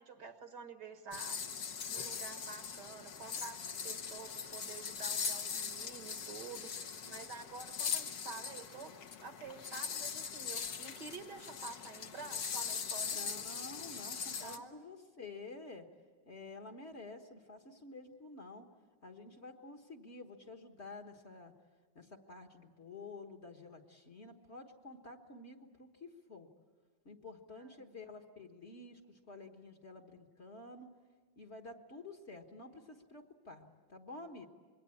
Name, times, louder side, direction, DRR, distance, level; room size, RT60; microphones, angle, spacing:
voice 1, 0.0-1.4 1.9-9.0 9.2-13.5 14.4-14.9 27.6-27.7, right 5 dB, 65° right, 7 dB, 2.1 m, -49 dB
sound 1, 1.1-14.6, left 6 dB, 60° left, 1.5 m, -41 dB
voice 2, 13.0-15.9 16.2-18.7 19.0-21.5 21.9-26.5 27.0-30.9 31.4-34.5, left 3 dB, 40° left, 4 dB, 1.6 m, -50 dB
26.5 x 22.0 x 8.5 m, 1.5 s
omnidirectional pair, 2.0 m